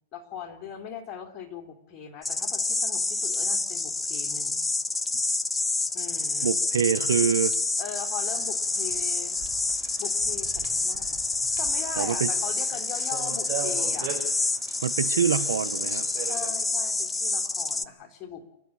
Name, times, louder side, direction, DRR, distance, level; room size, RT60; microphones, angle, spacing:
voice 1, 0.1-4.7 5.9-6.5 7.8-9.4 10.0-11.2 11.6-14.1 16.2-18.4, left 8 dB, 30° left, 3.6 m, -40 dB
sound 1, 2.2-17.9, left 3 dB, 10° left, 0.8 m, -28 dB
voice 2, 6.4-7.5 12.0-12.3 14.8-16.1, right 8 dB, 85° right, 1.0 m, -25 dB
sound 2, 8.3-16.5, right 8 dB, 55° right, 6.9 m, -41 dB
29.0 x 10.5 x 8.7 m
hypercardioid pair, 125°, 0 cm